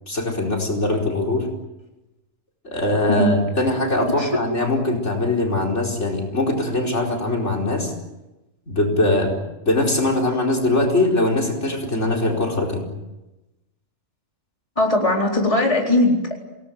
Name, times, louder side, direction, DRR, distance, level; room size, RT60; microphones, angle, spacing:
voice 1, 0.1-1.5 2.6-7.9 8.7-9.3 9.7-12.9, left 2 dB, 60° left, 4 dB, 5.0 m, -21 dB
voice 2, 14.8-16.3, left 1 dB, 25° left, -1 dB, 4.4 m, -19 dB
27.5 x 19.0 x 9.4 m, 1.0 s
omnidirectional pair, 1.4 m